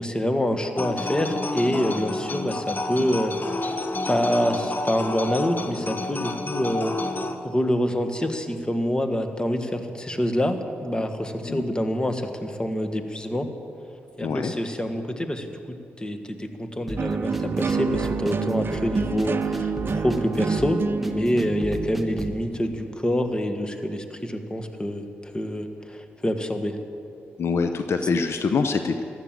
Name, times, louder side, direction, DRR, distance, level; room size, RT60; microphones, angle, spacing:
voice 1, 0.0-3.8 4.1-6.9 7.4-13.5 14.2-26.8, equal, 20° left, 6 dB, 1.8 m, -26 dB
sound 1, 0.7-7.4, left 2 dB, 45° left, 1.4 m, -30 dB
voice 2, 14.2-14.5 27.4-29.0, left 4 dB, 65° left, 7 dB, 0.9 m, -25 dB
sound 2, 16.9-22.4, right 1 dB, ahead, 1.5 m, -36 dB
sound 3, 17.0-23.0, right 5 dB, 50° right, 0.7 m, -28 dB
15.0 x 12.0 x 7.8 m, 2.5 s
supercardioid pair, 50°, 5 cm